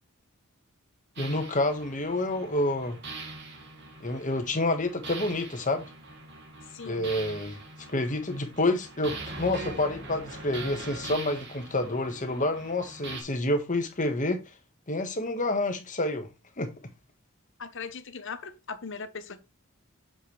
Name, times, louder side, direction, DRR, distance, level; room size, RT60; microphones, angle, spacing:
voice 1, 1.2-3.0 4.0-5.9 6.9-7.6 7.9-14.4 14.9-16.3 16.6-16.7, left 2 dB, 35° left, 1.5 m, -28 dB
sound 1, 1.2-13.2, right 3 dB, 55° right, 2.1 m, -42 dB
voice 2, 6.6-7.1 17.6-19.4, left 5 dB, 60° left, 1.0 m, -39 dB
7.3 x 5.8 x 3.3 m
head